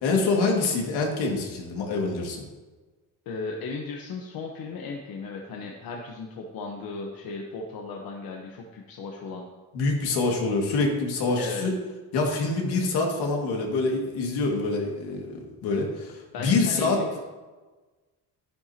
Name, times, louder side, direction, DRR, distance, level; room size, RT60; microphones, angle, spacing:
voice 1, 0.0-2.4 9.7-11.8 12.1-17.0, left 3 dB, 85° left, 1 dB, 2.1 m, -25 dB
voice 2, 3.3-9.5 11.4-11.7 16.3-17.2, left 4 dB, 65° left, 1 dB, 1.1 m, -36 dB
10.5 x 10.5 x 2.9 m, 1.3 s
cardioid pair, 130°, 39 cm